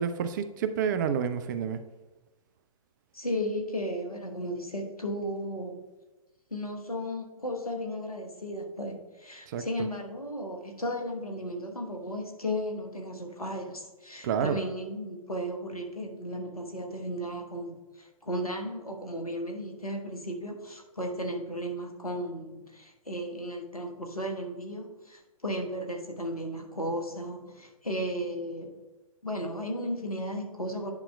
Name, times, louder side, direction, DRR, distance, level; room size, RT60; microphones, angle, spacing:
voice 1, 0.0-1.8 9.5-9.6 14.2-14.6, right 7 dB, 35° right, 11 dB, 0.4 m, -29 dB
voice 2, 3.1-5.8 6.5-28.8 29.2-30.9, equal, 90° left, 2 dB, 1.1 m, -35 dB
10.5 x 5.6 x 2.2 m, 1.1 s
figure-of-eight pair, 120°, 18 cm